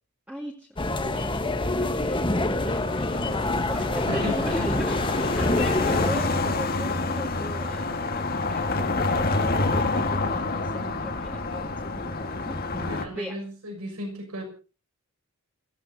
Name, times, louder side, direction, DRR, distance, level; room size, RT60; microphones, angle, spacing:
voice 1, 0.3-13.4, equal, 5° right, -1 dB, 2.1 m, -38 dB
sound 1, 0.8-6.1, left 2 dB, 20° left, 1.3 m, -26 dB
sound 2, 2.6-13.1, left 3 dB, 40° left, 1.7 m, -28 dB
voice 2, 4.1-4.7 5.3-6.2 10.3-10.5 12.7-14.4, equal, 85° right, 5 dB, 6.6 m, -36 dB
28.0 x 16.5 x 2.8 m, 0.35 s
head